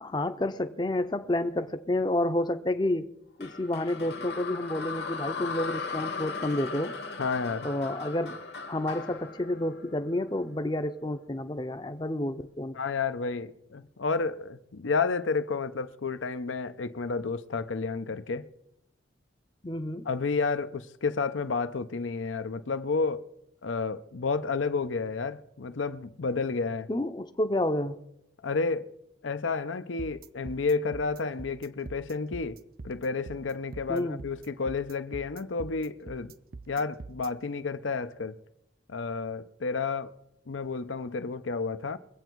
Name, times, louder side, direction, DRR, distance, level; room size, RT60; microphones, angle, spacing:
voice 1, 0.0-3.1 3.4-7.0 7.6-8.4 8.7-12.8 19.6-20.1 26.9-28.0 33.9-34.2, left 1 dB, 20° left, 0.5 m, -30 dB
sound 1, 3.4-10.6, left 5 dB, 60° left, 1.2 m, -38 dB
voice 2, 7.2-7.7 12.7-18.5 20.1-23.2 23.6-26.9 28.4-28.9 29.2-32.6 32.8-36.3 36.7-38.4 38.9-40.1 40.5-42.0, left 4 dB, 85° left, 0.7 m, -31 dB
sound 2, 30.0-37.3, right 3 dB, 50° right, 0.5 m, -44 dB
22.5 x 8.0 x 4.6 m
head